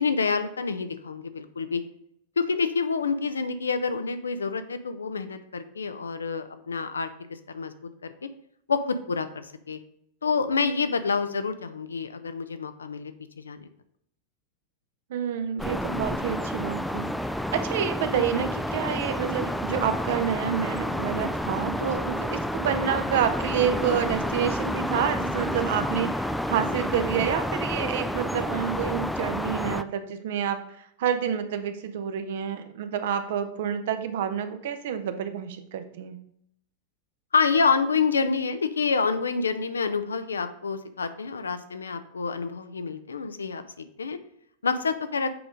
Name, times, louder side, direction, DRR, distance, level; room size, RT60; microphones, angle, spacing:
voice 1, 0.0-1.8 2.4-7.1 7.5-7.7 8.0-8.1 8.7-9.8 10.2-13.7 37.3-44.2 44.6-45.3, left 5 dB, 75° left, 10 dB, 0.5 m, -27 dB
voice 2, 15.1-17.1 17.5-36.2, right 8 dB, 55° right, 9 dB, 0.7 m, -28 dB
sound 1, 15.6-29.8, left 1 dB, ahead, 0.3 m, -30 dB
7.8 x 4.9 x 3.7 m, 0.72 s
figure-of-eight pair, 90°, 0 cm